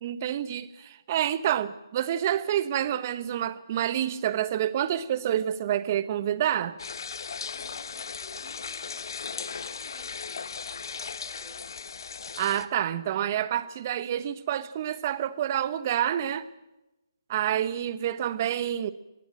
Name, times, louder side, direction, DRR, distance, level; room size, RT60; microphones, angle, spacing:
voice 1, 0.0-6.8 12.4-16.5 17.3-18.9, right 11 dB, 35° right, 1.1 m, -28 dB
sound 1, 6.8-12.7, left 5 dB, 60° left, 1.1 m, -37 dB
voice 2, 7.5-10.4 10.7-11.6, left 1 dB, 15° left, 6.6 m, -54 dB
21.0 x 17.5 x 7.6 m
figure-of-eight pair, 150°, 2 cm